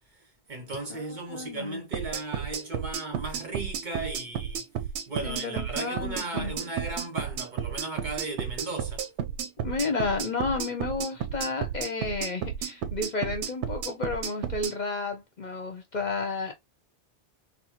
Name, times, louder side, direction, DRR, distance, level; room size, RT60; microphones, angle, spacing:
voice 1, 0.1-4.7 5.1-9.1, right 3 dB, 45° right, 1.0 m, -36 dB
voice 2, 1.3-1.8 5.2-6.6 9.6-16.5, left 3 dB, 45° left, 0.7 m, -32 dB
sound 1, 1.9-14.7, right 8 dB, 80° right, 0.9 m, -33 dB
4.0 x 2.1 x 2.9 m
omnidirectional pair, 1.1 m